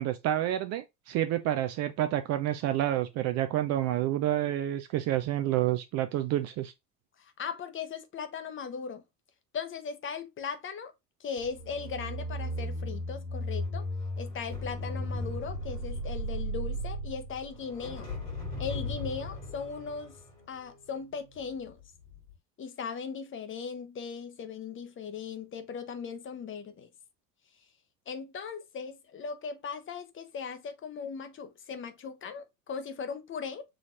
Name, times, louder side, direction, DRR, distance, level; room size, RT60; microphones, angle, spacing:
voice 1, 0.0-6.7, right 13 dB, 35° right, 0.5 m, -29 dB
voice 2, 7.2-9.0 9.5-10.9 11.2-13.9 14.2-18.1 18.6-20.2 20.5-21.8 22.6-26.9 28.1-33.6, left 6 dB, 25° left, 0.8 m, -38 dB
sound 1, 11.4-21.7 22.0-22.3, equal, 80° left, 2.4 m, -36 dB
6.2 x 3.0 x 2.5 m
figure-of-eight pair, 65°, 47 cm